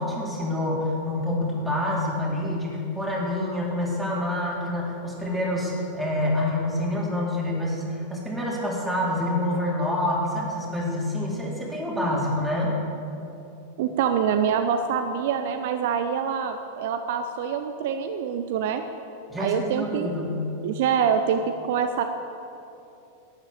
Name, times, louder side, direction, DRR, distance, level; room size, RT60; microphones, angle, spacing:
voice 1, 0.0-12.8 19.3-20.4, left 1 dB, 5° right, -5 dB, 3.9 m, -27 dB
voice 2, 13.8-18.8 19.4-20.1 20.6-22.0, right 7 dB, 50° right, 7 dB, 0.7 m, -25 dB
12.0 x 10.0 x 8.2 m, 2.8 s
figure-of-eight pair, 90°, 0 cm